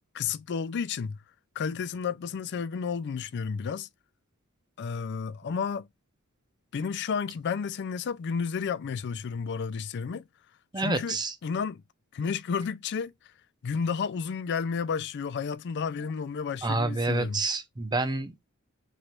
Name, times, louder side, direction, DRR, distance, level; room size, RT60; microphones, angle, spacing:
voice 1, 0.1-1.2 1.6-3.9 4.8-5.9 6.7-10.2 10.8-11.8 12.1-13.1 13.6-17.4, left 6 dB, 50° left, 0.4 m, -31 dB
voice 2, 10.7-11.3 16.6-18.4, right 2 dB, 20° right, 0.6 m, -28 dB
3.3 x 2.5 x 4.3 m
head